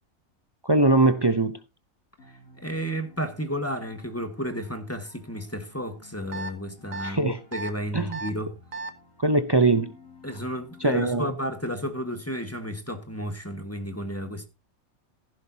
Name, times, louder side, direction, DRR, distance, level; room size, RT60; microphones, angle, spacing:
voice 1, 0.6-1.6 7.0-7.4 7.9-8.2 9.2-9.9 10.8-11.3, right 2 dB, 30° right, 0.4 m, -21 dB
sound 1, 2.2-11.3, left 3 dB, 85° left, 3.9 m, -54 dB
voice 2, 2.6-8.6 10.2-14.5, equal, 10° left, 1.6 m, -32 dB
sound 2, 6.3-6.5 6.9-7.1 7.5-7.7 8.1-8.3 8.7-8.9, right 3 dB, 70° right, 1.6 m, -34 dB
15.5 x 11.0 x 2.8 m
omnidirectional pair, 1.4 m